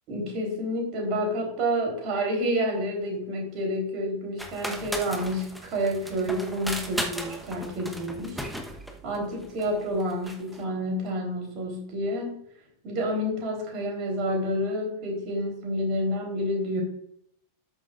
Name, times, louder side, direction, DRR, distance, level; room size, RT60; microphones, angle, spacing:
voice 1, 0.1-8.4 9.0-12.4 12.8-16.8, equal, 40° right, 1 dB, 3.7 m, -29 dB
sound 1, 4.4-10.6, equal, ahead, 1.1 m, -36 dB
13.0 x 7.4 x 2.5 m, 0.72 s
figure-of-eight pair, 90°, 0 cm